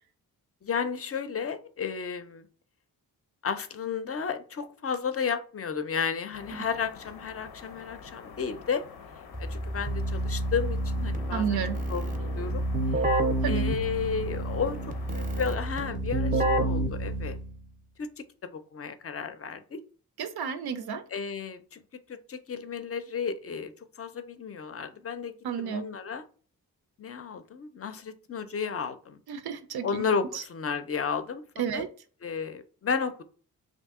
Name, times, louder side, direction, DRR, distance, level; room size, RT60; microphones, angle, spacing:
voice 1, 0.6-2.5 3.4-8.8 9.4-11.6 11.9-12.6 12.9-13.2 13.5-17.4 18.0-18.2 18.5-19.8 21.1-21.8 22.1-26.2 27.0-29.2 29.8-31.4 31.7-31.8 32.2-33.2, left 6 dB, 40° left, 10 dB, 0.4 m, -33 dB
sound 1, 6.3-15.4, left 6 dB, 90° left, 0.6 m, -47 dB
Keyboard (musical), 9.3-17.6, right 1 dB, 25° right, 0.5 m, -29 dB
voice 2, 11.3-11.8 13.4-13.6 20.2-21.0 25.4-25.8 29.3-30.0 31.6-31.9, right 7 dB, 80° right, 9 dB, 0.5 m, -31 dB
2.7 x 2.6 x 3.5 m, 0.40 s
wide cardioid pair, 85°, 37 cm